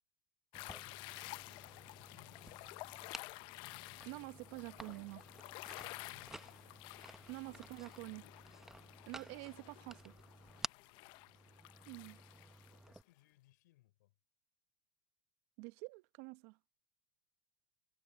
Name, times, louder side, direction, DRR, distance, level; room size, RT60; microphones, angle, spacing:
sound 1, 0.5-12.8, left 23 dB, 55° left, 0.8 m, -52 dB
sound 2, 0.5-13.0, right 1 dB, 5° right, 0.8 m, -53 dB
voice 1, 0.8-2.7 5.6-6.8 7.3-7.7 10.8-11.6 12.6-14.2, left 17 dB, 75° left, 5.9 m, -71 dB
voice 2, 4.0-5.2 7.3-8.3 9.1-10.1 11.9-12.2 15.6-16.6, right 27 dB, 60° right, 1.1 m, -47 dB
hypercardioid pair, 110°, 10 cm